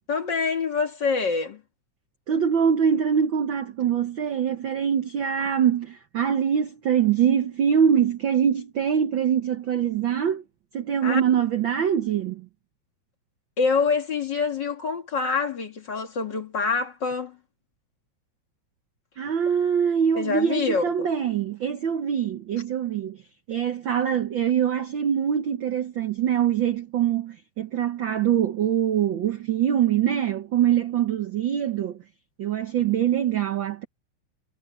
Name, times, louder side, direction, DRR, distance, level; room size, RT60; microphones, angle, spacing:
voice 1, 0.1-1.6 11.0-11.2 13.6-17.4 20.1-21.1, left 4 dB, 40° left, 2.1 m, -26 dB
voice 2, 2.3-10.4 10.7-12.5 19.2-23.2 23.5-32.0 32.4-33.8, right 8 dB, 70° right, 1.1 m, -23 dB
omnidirectional pair, 3.5 m